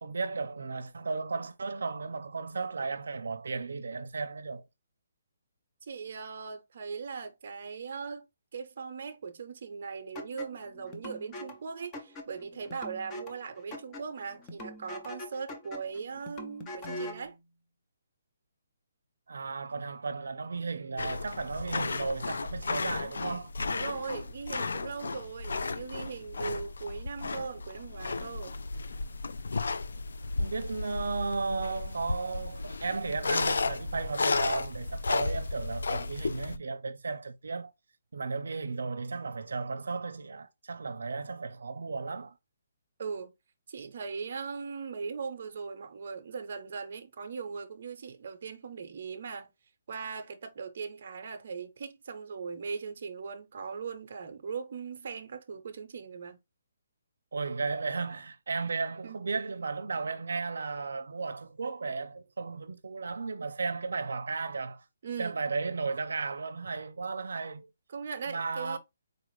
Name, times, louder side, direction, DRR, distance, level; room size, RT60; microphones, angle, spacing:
voice 1, 0.0-4.6 19.3-23.5 30.4-37.7 38.1-42.3 57.3-64.8 65.2-67.7 68.3-68.8, right 4 dB, 85° right, 0.5 m, -34 dB
voice 2, 5.8-8.2 8.5-17.3 20.7-20.8 23.7-28.6 43.0-43.3 43.7-49.5 49.9-56.4 59.0-59.2 65.0-65.4 67.9-68.8, right 5 dB, 35° right, 0.7 m, -39 dB
sound 1, 10.1-17.3, left 1 dB, 10° left, 0.5 m, -43 dB
sound 2, 21.0-36.6, left 3 dB, 90° left, 0.4 m, -34 dB
4.1 x 2.5 x 3.1 m
hypercardioid pair, 180°, 0 cm